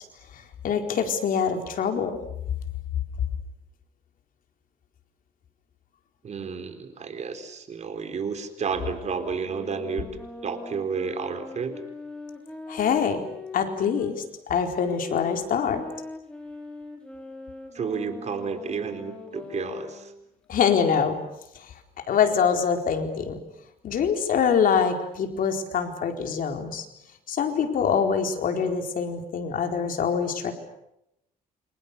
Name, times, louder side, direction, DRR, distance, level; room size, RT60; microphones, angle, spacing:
voice 1, 0.6-2.2 12.7-13.2 13.5-14.2 14.5-15.8 20.5-21.2 21.6-21.7 22.1-23.4 23.8-26.9 27.3-30.5, left 7 dB, 60° left, 5 dB, 4.3 m, -24 dB
voice 2, 6.2-10.2 10.4-11.8 17.7-20.1, right 5 dB, 45° right, 9 dB, 3.9 m, -31 dB
sound 1, 8.7-14.2 14.8-20.2, left 3 dB, 5° left, 6.2 m, -41 dB
29.0 x 26.5 x 6.8 m, 0.82 s
cardioid pair, 110°, 16 cm